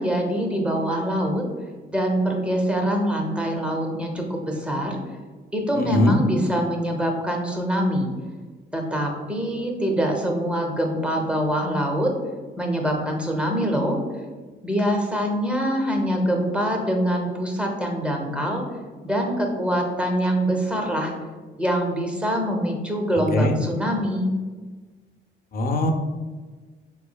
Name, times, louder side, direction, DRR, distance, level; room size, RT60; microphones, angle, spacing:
voice 1, 0.0-1.4 1.9-5.0 5.5-8.1 8.7-12.1 12.6-14.0 14.6-18.6 19.0-21.1 21.6-24.3, equal, 5° right, 1 dB, 0.7 m, -24 dB
voice 2, 5.7-6.1 23.3-23.5 25.5-25.9, left 1 dB, 45° left, 5 dB, 0.5 m, -21 dB
4.2 x 3.1 x 2.2 m, 1.4 s
cardioid pair, 90°, 20 cm